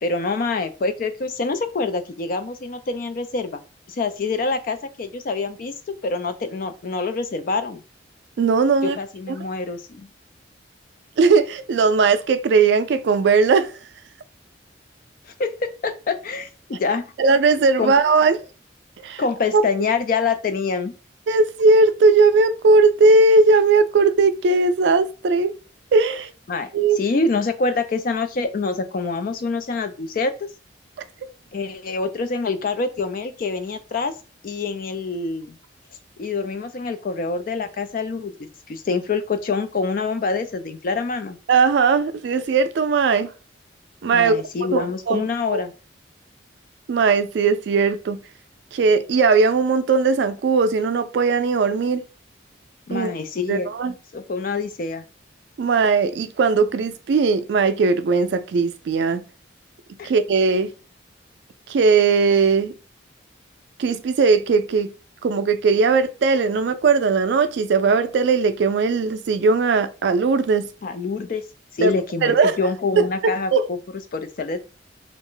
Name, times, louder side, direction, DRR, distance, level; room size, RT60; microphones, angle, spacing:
voice 1, 0.0-3.6 3.9-5.7 6.0-7.8 8.8-10.1 15.4-17.1 17.8-17.9 19.2-20.9 26.5-26.7 27.0-30.3 31.5-34.1 34.4-35.5 36.2-38.3 38.7-41.4 44.1-45.7 52.9-53.7 54.1-55.0 60.0-60.1 70.8-71.4 71.8-73.8 74.1-74.6, left 4 dB, 50° left, 0.3 m, -25 dB
voice 2, 8.4-9.0 11.2-13.7 17.2-18.4 19.0-19.2 19.5-19.6 21.3-25.5 25.9-26.3 26.7-27.0 41.5-43.3 44.0-44.4 44.7-45.6 46.9-48.2 48.7-52.0 52.9-53.1 53.5-53.9 55.6-59.2 60.0-60.7 61.7-62.7 63.8-64.9 65.2-70.7 71.8-71.9 72.2-72.6 73.0-73.7, right 4 dB, 70° right, 0.3 m, -18 dB
2.4 x 2.0 x 3.7 m
head